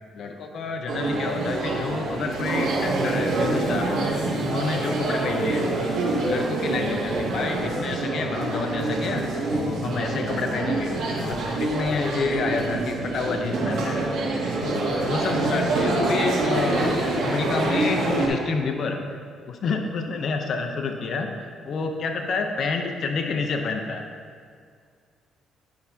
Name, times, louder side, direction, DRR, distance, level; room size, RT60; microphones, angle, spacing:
voice 1, 0.1-4.0 4.4-5.7 6.1-14.1 14.6-19.0 19.5-24.1, left 4 dB, 60° left, 3 dB, 0.6 m, -29 dB
sound 1, 0.9-18.3, right 2 dB, 65° right, 1.9 m, -26 dB
10.5 x 5.6 x 2.7 m, 2.1 s
supercardioid pair, 75°, 0 cm